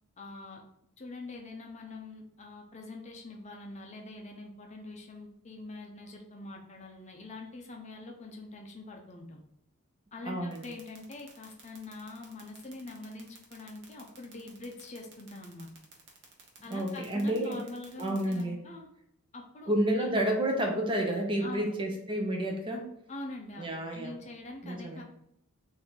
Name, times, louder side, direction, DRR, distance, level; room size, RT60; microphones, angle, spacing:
voice 1, 0.2-0.6 1.0-9.4 10.1-15.7 16.6-18.9 19.3-20.1 21.4-21.7 23.1-25.0, left 2 dB, 30° left, 1 dB, 0.6 m, -44 dB
voice 2, 10.2-10.7 16.7-17.6 18.0-18.6 19.7-22.9 23.6-24.1 24.6-25.0, right 1 dB, 20° right, 2 dB, 0.6 m, -30 dB
sound 1, 10.5-18.4, right 6 dB, 55° right, 0.9 m, -54 dB
3.6 x 2.7 x 4.5 m, 0.74 s
head